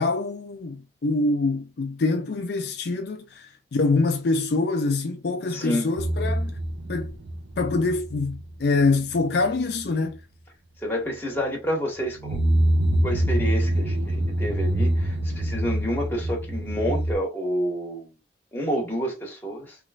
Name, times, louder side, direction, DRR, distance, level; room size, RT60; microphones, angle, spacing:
voice 1, 0.0-6.5 6.9-7.2 7.6-10.2, left 3 dB, 65° left, 0.5 m, -25 dB
voice 2, 5.5-5.9 10.8-12.4 13.0-18.1 18.5-19.8, equal, 10° left, 1.5 m, -29 dB
sound 1, 6.0-8.5 8.8-9.2 9.4-9.5 12.1-17.1, right 1 dB, 80° right, 1.2 m, -25 dB
3.5 x 3.1 x 2.4 m
head